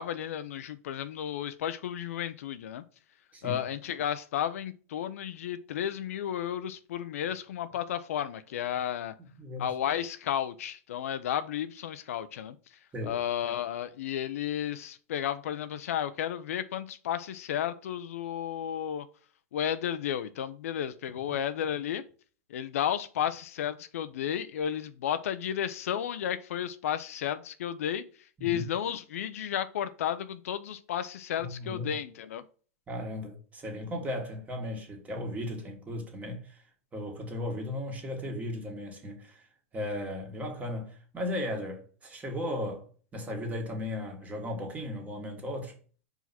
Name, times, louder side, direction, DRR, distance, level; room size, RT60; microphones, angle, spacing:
voice 1, 0.0-2.8 3.4-9.1 9.6-12.6 13.0-19.1 19.5-22.0 22.5-28.0 28.4-32.4, left 10 dB, 80° left, 0.6 m, -33 dB
voice 2, 9.4-9.7 12.9-13.2 21.3-21.4 28.4-28.6 31.4-32.0 32.9-36.6 36.9-39.4 39.7-42.9 43.1-45.8, left 1 dB, 20° right, 1.8 m, -36 dB
4.9 x 3.9 x 5.8 m
supercardioid pair, 130°, 8 cm